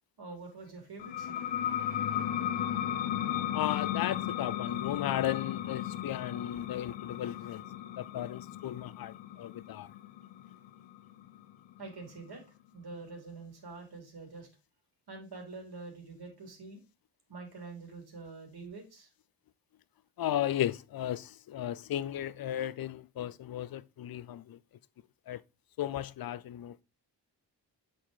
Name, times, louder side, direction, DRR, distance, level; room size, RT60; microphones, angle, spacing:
voice 1, 0.2-1.5 2.0-2.3 11.8-12.4 12.7-14.5 15.1-16.8 17.3-19.1, right 3 dB, 60° right, 2.7 m, -46 dB
sound 1, 1.0-12.3, left 11 dB, 90° left, 0.7 m, -35 dB
voice 2, 3.5-7.6 8.0-9.9 20.2-24.6 25.3-25.4 25.8-26.8, left 12 dB, 55° left, 0.5 m, -35 dB
7.5 x 4.3 x 3.7 m
cardioid pair, 100°, 43 cm